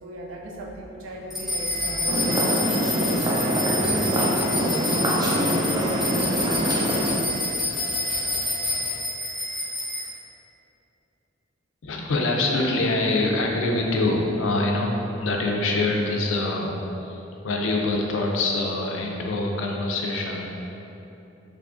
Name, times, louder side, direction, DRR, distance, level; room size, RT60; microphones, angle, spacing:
voice 1, 0.0-3.3, right 1 dB, 85° right, 0 dB, 0.4 m, -37 dB
sound 1, 1.3-10.0, left 1 dB, ahead, 0.8 m, -28 dB
sound 2, 2.1-7.2, equal, 20° right, 0.3 m, -24 dB
voice 2, 11.8-20.5, left 2 dB, 75° left, 0 dB, 0.4 m, -25 dB
3.5 x 3.2 x 2.4 m, 2.9 s
head